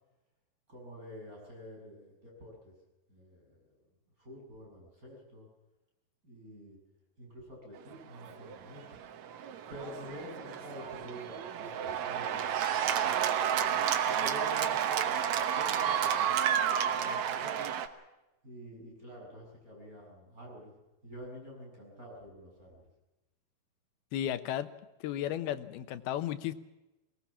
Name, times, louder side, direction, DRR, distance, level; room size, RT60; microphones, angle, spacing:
voice 1, 0.7-2.7 3.1-3.7 4.2-5.5 6.2-6.8 7.2-9.0 9.7-13.8 14.1-16.3 16.9-17.7 18.4-20.7 21.0-22.8, left 1 dB, 20° right, -1 dB, 7.6 m, -48 dB
Cheering / Applause, 8.2-17.9, right 9 dB, 70° right, 1.8 m, -31 dB
voice 2, 24.1-24.7 25.0-26.5, left 11 dB, 75° left, 11 dB, 2.8 m, -34 dB
22.5 x 19.0 x 7.2 m, 1.0 s
omnidirectional pair, 4.7 m